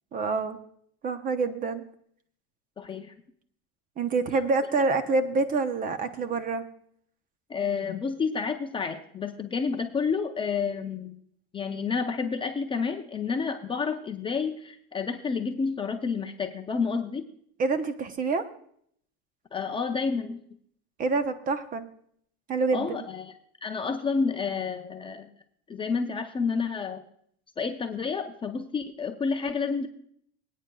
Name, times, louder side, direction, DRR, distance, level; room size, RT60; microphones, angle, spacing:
voice 1, 0.1-0.6 1.0-1.8 4.0-6.6 17.6-18.4 21.0-21.9 22.5-23.0, right 3 dB, 25° right, 10 dB, 0.8 m, -27 dB
voice 2, 2.8-3.1 7.5-11.2 11.5-17.3 19.5-20.4 22.7-23.3 23.6-25.3 25.7-27.0 27.6-29.9, left 5 dB, 15° left, 5 dB, 0.5 m, -30 dB
23.5 x 9.1 x 2.3 m, 0.65 s
supercardioid pair, 140°, 32 cm